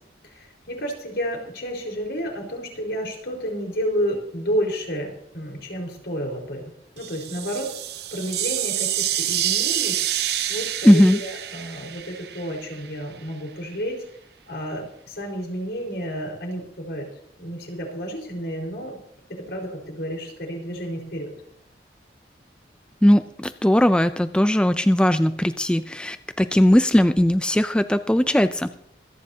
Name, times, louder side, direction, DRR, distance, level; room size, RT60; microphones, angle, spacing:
voice 1, 0.2-6.6 6.9-7.7 8.1-10.0 10.5-14.0 14.5-17.1 17.4-19.0 19.3-21.3, equal, 75° left, -1 dB, 4.7 m, -30 dB
sound 1, 7.0-12.9, right 11 dB, 65° right, 0.8 m, -27 dB
voice 2, 10.8-11.2 23.0-28.8, equal, 5° left, 11 dB, 0.4 m, -18 dB
26.0 x 9.9 x 2.8 m, 0.74 s
head